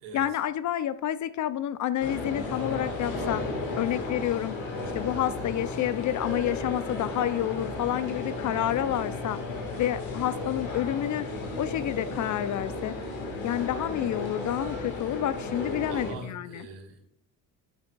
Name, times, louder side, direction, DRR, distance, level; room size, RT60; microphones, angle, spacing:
voice 1, 0.1-3.4 3.8-4.6 4.9-9.4 9.8-11.3 11.6-12.9 13.4-16.6, left 12 dB, 40° left, 15 dB, 0.4 m, -29 dB
sound 1, 2.0-16.1, left 2 dB, 70° left, 1.8 m, -34 dB
voice 2, 15.9-17.1, right 3 dB, 75° right, 2 dB, 1.6 m, -42 dB
8.0 x 6.1 x 2.3 m, 0.70 s
hypercardioid pair, 55°, 49 cm